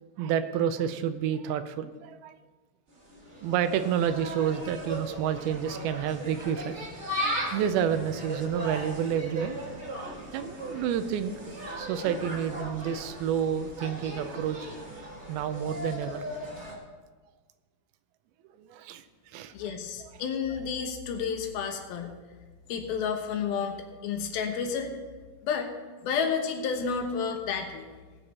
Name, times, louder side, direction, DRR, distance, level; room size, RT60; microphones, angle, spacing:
voice 1, 0.2-2.4 3.4-6.7 7.5-9.6 10.0-11.3 11.8-14.6 15.3-16.2 18.6-19.5, right 9 dB, 80° right, 10 dB, 2.4 m, -29 dB
Insect, 2.9-16.7, equal, 40° right, 1.0 m, -37 dB
voice 2, 19.5-22.1 22.7-23.8 24.0-24.9 25.4-25.7 26.0-27.9, left 6 dB, 75° left, 4 dB, 2.9 m, -30 dB
19.0 x 7.3 x 4.2 m, 1.4 s
omnidirectional pair, 4.5 m